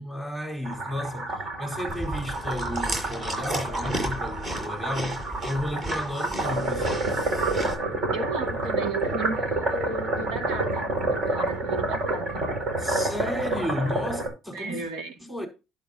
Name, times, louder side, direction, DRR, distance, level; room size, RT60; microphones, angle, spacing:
voice 1, 0.0-7.1 12.8-14.8 15.2-15.5, left 1 dB, 5° right, 4.5 m, -33 dB
sound 1, 0.6-14.3, right 2 dB, 50° right, 5.9 m, -29 dB
Chewing mastication, 1.9-7.7, right 1 dB, 30° right, 6.4 m, -33 dB
voice 2, 8.1-12.6 14.5-15.1, right 4 dB, 80° right, 2.3 m, -34 dB
11.5 x 8.9 x 2.8 m
cardioid pair, 120°, 0 cm